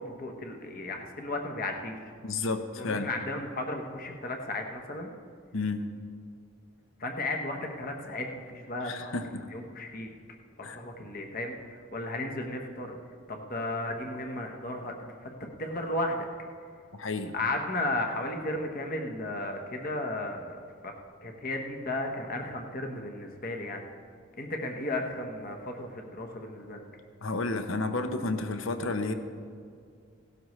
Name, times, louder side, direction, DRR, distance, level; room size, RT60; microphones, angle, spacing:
voice 1, 0.0-2.1 2.7-5.1 7.0-10.1 10.6-13.0 13.3-16.3 17.3-20.9 21.2-23.8 24.3-26.8, left 2 dB, 40° left, 3 dB, 1.1 m, -34 dB
voice 2, 2.2-3.1 5.5-5.8 8.8-9.5 10.6-10.8 16.9-17.3 27.2-29.1, left 3 dB, 65° left, 8 dB, 0.8 m, -31 dB
17.0 x 12.5 x 3.2 m, 2.2 s
head